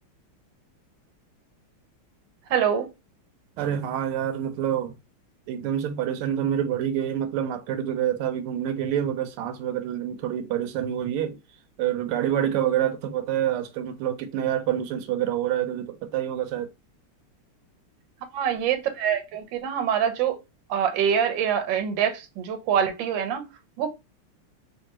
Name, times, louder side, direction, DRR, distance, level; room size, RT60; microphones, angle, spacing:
voice 1, 2.5-2.9 18.3-20.4 20.7-23.4 23.8-23.9, right 8 dB, 70° right, 1.3 m, -25 dB
voice 2, 3.6-4.9 5.5-11.4 11.8-16.7, right 10 dB, 85° right, 1.5 m, -27 dB
3.4 x 3.0 x 2.9 m
omnidirectional pair, 2.3 m